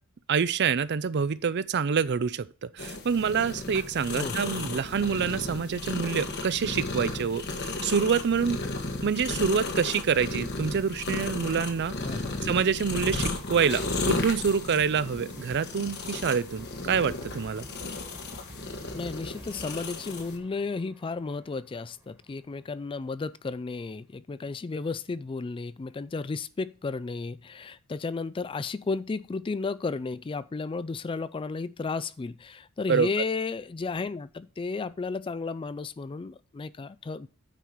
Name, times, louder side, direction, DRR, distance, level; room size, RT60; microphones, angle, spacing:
voice 1, 0.3-8.6 9.0-12.0 12.4-17.7 32.9-33.1, right 6 dB, 50° right, 0.4 m, -26 dB
Cat purring, 2.8-20.4, left 2 dB, 50° left, 1.4 m, -34 dB
voice 2, 4.1-4.7 12.0-12.5 18.9-37.3, left 4 dB, 25° left, 0.3 m, -33 dB
sound 1, 10.1-22.9, equal, 10° right, 1.5 m, -51 dB
9.2 x 4.8 x 5.5 m
head